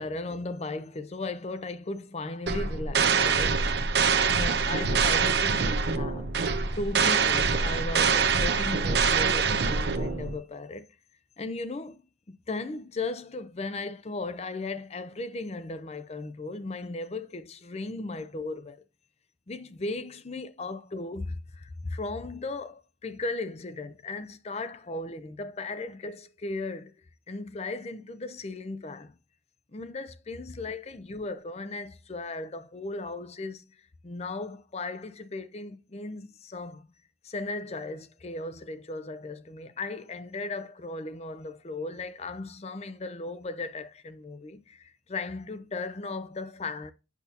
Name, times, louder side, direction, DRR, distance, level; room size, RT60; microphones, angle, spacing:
voice 1, 0.0-3.6 4.3-6.3 6.7-10.9 11.4-12.0 12.3-18.8 19.5-29.1 29.7-36.9 37.2-46.9, left 2 dB, 35° left, 0.5 m, -36 dB
sound 1, 2.5-10.3, right 5 dB, 55° right, 0.7 m, -25 dB
8.3 x 6.8 x 2.8 m
head